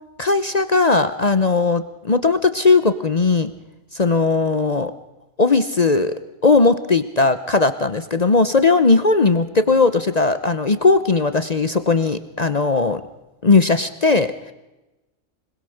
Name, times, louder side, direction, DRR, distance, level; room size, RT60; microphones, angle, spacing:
voice 1, 0.2-3.5 3.9-4.9 5.4-6.2 6.4-13.0 13.4-14.5, left 3 dB, 35° left, 11 dB, 0.8 m, -18 dB
26.0 x 20.0 x 6.5 m, 1.0 s
omnidirectional pair, 1.4 m